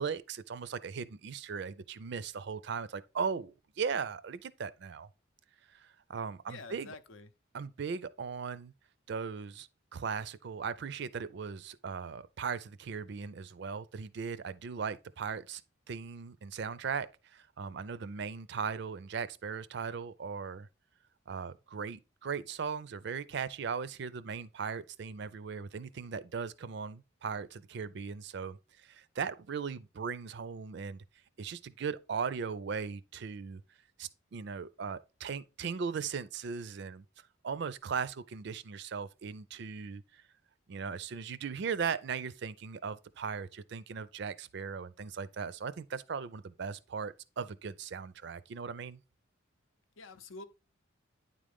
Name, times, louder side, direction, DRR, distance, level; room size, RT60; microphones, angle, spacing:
voice 1, 0.0-5.1 5.7-6.9 7.5-8.7 9.1-15.6 15.9-20.7 21.3-31.0 31.4-33.6 34.0-37.0 37.4-40.2 40.7-49.0, right 6 dB, 55° right, 0.4 m, -38 dB
voice 2, 6.5-7.3 50.0-50.4, left 3 dB, 75° left, 0.6 m, -47 dB
9.5 x 3.8 x 3.5 m
head